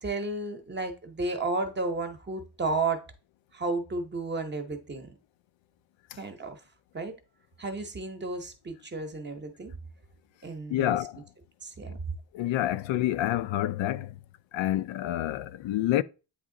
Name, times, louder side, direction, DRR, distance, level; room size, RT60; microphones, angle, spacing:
voice 1, 0.0-3.0 3.5-5.1 6.2-6.6 6.9-7.1 7.6-9.7 10.4-11.0 11.6-12.0, right 3 dB, 25° right, 0.8 m, -32 dB
voice 2, 10.7-11.2 11.9-12.0 12.3-14.1 14.5-16.0, left 14 dB, 85° left, 0.5 m, -28 dB
8.6 x 3.0 x 3.7 m
wide cardioid pair, 165°, 45 cm